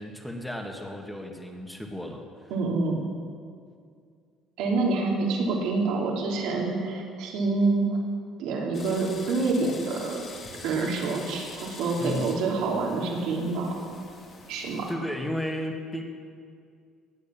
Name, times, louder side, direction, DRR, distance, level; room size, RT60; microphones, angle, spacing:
voice 1, 0.0-2.2 12.0-12.3 14.9-16.0, left 1 dB, 5° left, 2 dB, 2.0 m, -33 dB
voice 2, 2.5-3.1 4.6-8.0 8.4-10.2 10.6-13.8 14.5-14.9, right 3 dB, 80° right, -1 dB, 3.1 m, -27 dB
sound 1, 8.7-14.9, left 3 dB, 45° left, 2.6 m, -45 dB
18.0 x 8.3 x 7.1 m, 2.2 s
cardioid pair, 110°, 0 cm